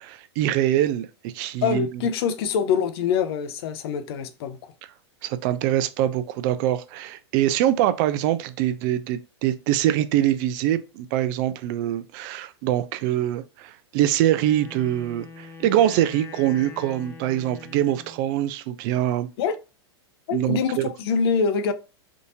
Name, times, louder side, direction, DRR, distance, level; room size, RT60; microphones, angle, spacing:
voice 1, 0.0-1.9 5.2-19.3 20.3-20.8, right 12 dB, 45° right, 0.4 m, -24 dB
voice 2, 1.6-4.6 19.4-19.6 20.3-21.7, left 6 dB, 60° left, 0.6 m, -24 dB
Wind instrument woodwind instrument, 14.3-18.3, left 5 dB, 20° left, 0.6 m, -43 dB
3.6 x 2.7 x 2.7 m
hypercardioid pair, 115°, 14 cm